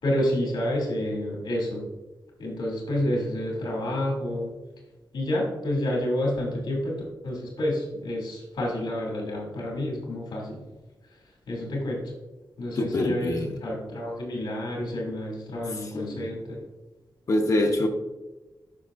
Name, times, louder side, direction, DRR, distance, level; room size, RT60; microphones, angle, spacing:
voice 1, 0.0-1.8 2.4-4.5 5.1-10.6 11.5-12.0 12.6-16.6, left 1 dB, 85° left, -2 dB, 2.6 m, -29 dB
voice 2, 12.8-13.6 15.9-16.3 17.3-17.9, left 1 dB, 45° left, 3 dB, 0.8 m, -25 dB
10.5 x 5.9 x 2.5 m, 1.1 s
wide cardioid pair, 155°, 8 cm